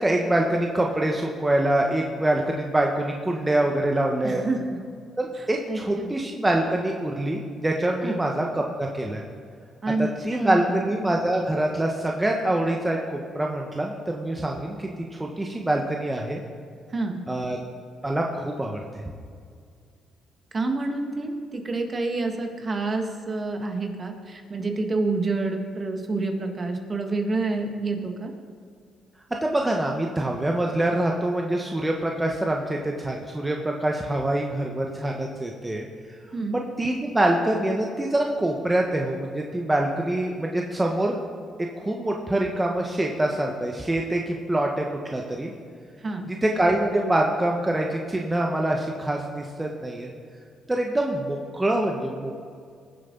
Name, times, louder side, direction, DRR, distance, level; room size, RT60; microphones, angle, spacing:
voice 1, 0.0-4.4 5.2-9.2 10.0-16.4 17.3-17.6 18.0-19.0 29.4-35.9 36.5-41.2 41.6-44.8 45.1-45.5 46.3-50.1 50.7-52.3, right 1 dB, 15° right, 0 dB, 1.2 m, -25 dB
voice 2, 4.2-4.8 5.4-6.1 8.0-8.2 9.8-10.7 16.9-17.2 20.5-28.3 36.3-36.6 46.0-46.3, right 3 dB, 35° right, 4 dB, 1.8 m, -28 dB
20.5 x 7.8 x 4.0 m, 2.2 s
cardioid pair, 90°, 0 cm